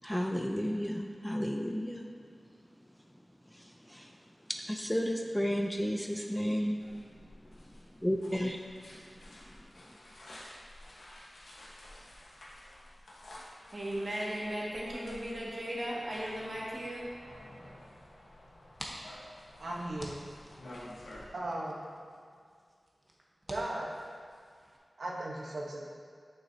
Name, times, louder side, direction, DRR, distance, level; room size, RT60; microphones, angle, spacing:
voice 1, 0.0-2.1 3.5-4.2 4.5-6.8 8.0-8.6, equal, 5° left, 0.4 m, -32 dB
sound 1, 6.8-21.3, left 1 dB, 80° left, 1.2 m, -52 dB
voice 2, 13.7-17.1, equal, 45° right, 1.8 m, -36 dB
sound 2, 18.5-24.8, equal, 15° right, 1.0 m, -50 dB
voice 3, 19.6-20.2 21.0-21.9 23.5-23.9 25.0-25.9, right 1 dB, 80° right, 1.1 m, -37 dB
8.8 x 7.1 x 2.8 m
wide cardioid pair, 85°, 0 cm